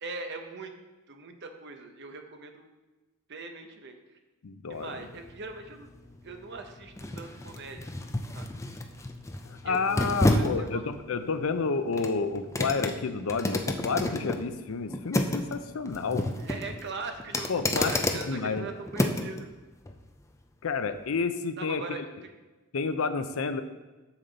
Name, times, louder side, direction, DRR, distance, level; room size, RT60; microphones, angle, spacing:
voice 1, 0.0-0.7 1.1-2.7 3.3-4.0 4.7-5.9 6.2-7.9 8.3-8.5 9.6-10.8 16.4-19.5 21.6-22.3, right 3 dB, 55° right, 5 dB, 0.8 m, -40 dB
voice 2, 4.4-4.9 9.4-16.3 17.5-17.9 18.2-18.6 20.6-22.0 22.7-23.6, left 4 dB, 70° left, 10 dB, 0.5 m, -30 dB
sound 1, 4.7-19.4 19.9-20.0, left 1 dB, 15° left, 0.4 m, -31 dB
7.1 x 6.8 x 4.0 m, 1.2 s
head